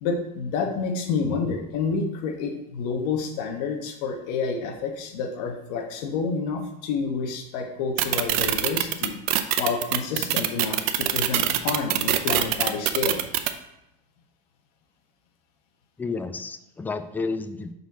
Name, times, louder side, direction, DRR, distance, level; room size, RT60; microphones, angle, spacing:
voice 1, 0.0-9.2 9.6-13.2, left 5 dB, 65° left, 3 dB, 1.1 m, -29 dB
sound 1, 8.0-13.5, right 13 dB, 60° right, 0.6 m, -23 dB
voice 2, 16.0-17.7, left 4 dB, 10° left, 10 dB, 0.3 m, -31 dB
6.1 x 4.2 x 4.1 m, 0.87 s
supercardioid pair, 130°, 21 cm